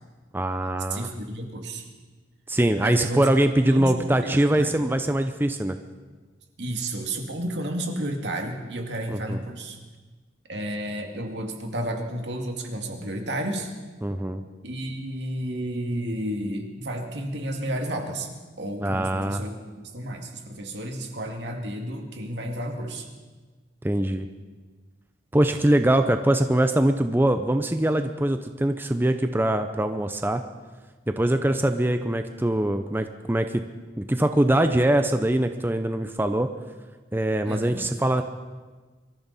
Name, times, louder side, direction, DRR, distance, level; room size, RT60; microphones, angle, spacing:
voice 1, 0.3-1.1 2.5-5.8 9.1-9.4 14.0-14.4 18.8-19.4 23.8-24.3 25.3-30.4 31.1-33.6 34.0-36.5 37.1-38.2, right 1 dB, 10° right, 8 dB, 0.6 m, -23 dB
voice 2, 0.9-1.9 2.8-3.3 3.6-4.9 6.6-9.8 10.5-13.7 14.6-18.3 18.6-19.6 19.8-23.1 37.4-37.9, right 1 dB, 75° right, 3 dB, 2.3 m, -32 dB
24.0 x 14.0 x 4.2 m, 1.4 s
head